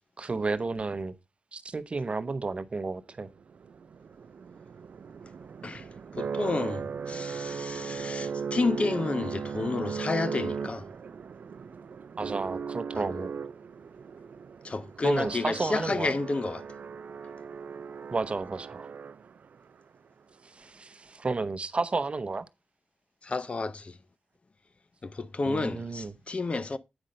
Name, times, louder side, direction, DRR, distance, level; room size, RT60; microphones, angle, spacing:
voice 1, 0.2-1.2 1.5-3.3 12.2-13.3 15.0-16.2 18.1-18.9 20.4-22.5 25.4-26.1, right 3 dB, 40° right, 0.7 m, -32 dB
sound 1, 3.4-19.6, right 6 dB, 75° right, 0.4 m, -37 dB
voice 2, 6.1-10.9 12.9-13.1 14.6-16.6 23.2-24.0 25.0-26.8, left 3 dB, 45° left, 0.6 m, -30 dB
8.9 x 5.5 x 5.1 m
wide cardioid pair, 90°, 3 cm